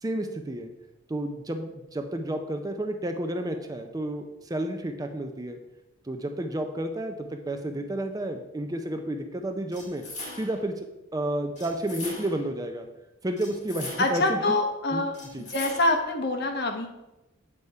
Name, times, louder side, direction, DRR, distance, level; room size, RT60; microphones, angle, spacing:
voice 1, 0.0-0.7 1.1-5.6 6.0-10.0 10.3-10.9 11.1-12.9 13.2-14.4 14.9-15.0 15.3-15.5, right 1 dB, 15° right, 6 dB, 0.4 m, -31 dB
sound 1, 9.7-10.7 11.6-12.5 13.4-14.3 15.1-16.1, left 2 dB, 35° left, 1.7 m, -40 dB
voice 2, 14.0-15.1 15.4-16.9, left 2 dB, 50° left, 3 dB, 1.0 m, -25 dB
8.0 x 3.5 x 5.4 m, 0.97 s
head